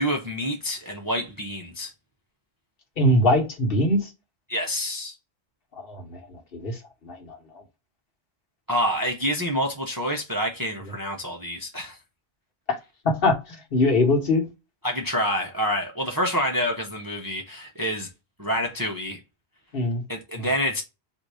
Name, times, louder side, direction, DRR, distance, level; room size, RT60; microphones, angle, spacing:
voice 1, 0.0-1.9 4.5-5.1 8.7-12.0 14.8-18.1 18.4-19.2 20.1-20.8, equal, 25° right, 0.6 m, -27 dB
voice 2, 3.0-4.1 5.7-7.6 12.7-12.8 13.0-14.5 19.7-20.0 20.4-20.5, left 1 dB, 60° left, 1.3 m, -23 dB
4.0 x 2.7 x 4.7 m
omnidirectional pair, 1.1 m